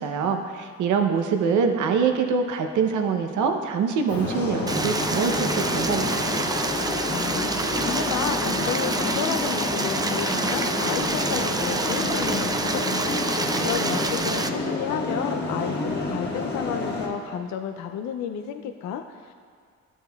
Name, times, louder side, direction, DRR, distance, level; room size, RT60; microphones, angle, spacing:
voice 1, 0.0-6.3, right 6 dB, 75° right, 5 dB, 0.8 m, -24 dB
sound 1, 4.1-17.1, left 2 dB, 35° left, 1.4 m, -29 dB
Stream, 4.7-14.5, right 3 dB, 15° right, 0.4 m, -27 dB
voice 2, 7.1-19.3, left 8 dB, 65° left, 6 dB, 0.5 m, -32 dB
12.5 x 7.3 x 2.3 m, 2.1 s
cardioid pair, 90°, 30 cm